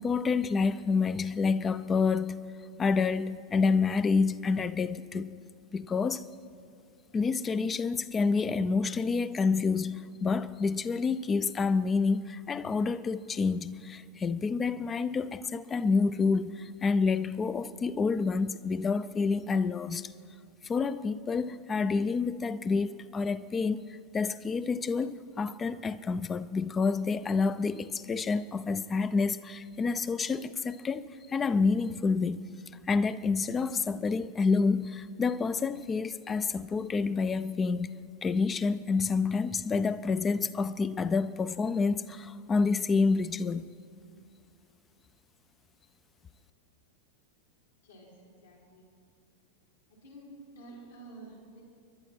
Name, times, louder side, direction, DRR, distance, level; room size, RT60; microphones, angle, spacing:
voice 1, 0.0-2.4 2.8-5.3 5.7-6.2 7.1-20.1 20.6-32.5 32.9-37.9 38.2-43.7, left 4 dB, 20° left, 0.5 m, -28 dB
voice 2, 47.8-48.9 49.9-51.6, right 2 dB, 70° left, 4.5 m, -50 dB
28.0 x 11.5 x 4.5 m
figure-of-eight pair, 90°, 0 cm